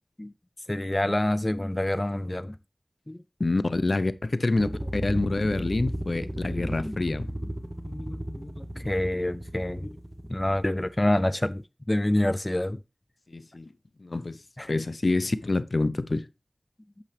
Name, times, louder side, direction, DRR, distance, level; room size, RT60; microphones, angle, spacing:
voice 1, 0.7-2.6 3.1-3.2 3.9-4.0 4.6-4.7 6.4-6.9 7.9-9.9 10.3-11.6 11.9-12.8 14.6-14.7, left 1 dB, 25° left, 0.4 m, -27 dB
voice 2, 3.4-7.3 13.3-13.7 14.0-14.4 14.7-16.3, left 2 dB, 65° left, 0.7 m, -27 dB
sound 1, 4.6-11.3, right 1 dB, 25° right, 1.1 m, -35 dB
8.4 x 7.1 x 3.4 m
wide cardioid pair, 50°, 0 cm